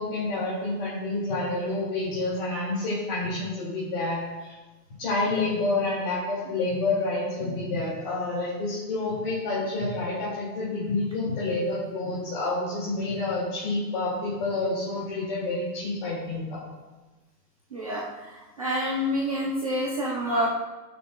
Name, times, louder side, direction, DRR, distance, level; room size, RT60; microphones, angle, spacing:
voice 1, 0.0-4.5 5.0-16.6, left 2 dB, 30° left, -9 dB, 2.2 m, -28 dB
voice 2, 17.7-20.5, equal, 25° right, -6 dB, 0.5 m, -28 dB
15.5 x 6.0 x 2.2 m, 1.2 s
hypercardioid pair, 170°, 50 cm